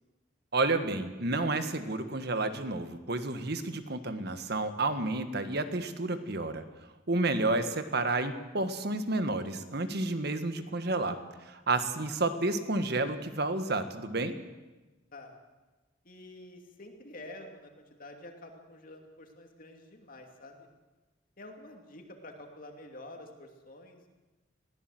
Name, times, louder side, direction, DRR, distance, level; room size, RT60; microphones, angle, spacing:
voice 1, 0.5-6.6 7.1-14.3, right 2 dB, 60° right, 9 dB, 1.6 m, -30 dB
voice 2, 16.0-20.7 21.4-24.1, left 1 dB, 50° left, 3 dB, 2.7 m, -48 dB
21.5 x 16.0 x 7.8 m, 1.1 s
head